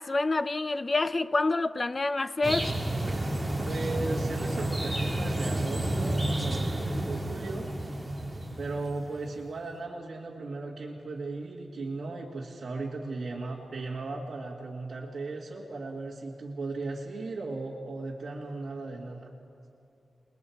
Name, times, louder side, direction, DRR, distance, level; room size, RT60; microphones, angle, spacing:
voice 1, 0.0-2.8, left 3 dB, 30° left, 14 dB, 0.5 m, -27 dB
sound 1, 2.4-9.3, right 1 dB, 5° right, 2.0 m, -30 dB
voice 2, 3.6-7.7 8.6-19.3, right 3 dB, 50° right, -5 dB, 2.1 m, -37 dB
29.5 x 20.5 x 4.7 m, 2.5 s
wide cardioid pair, 145°, 0 cm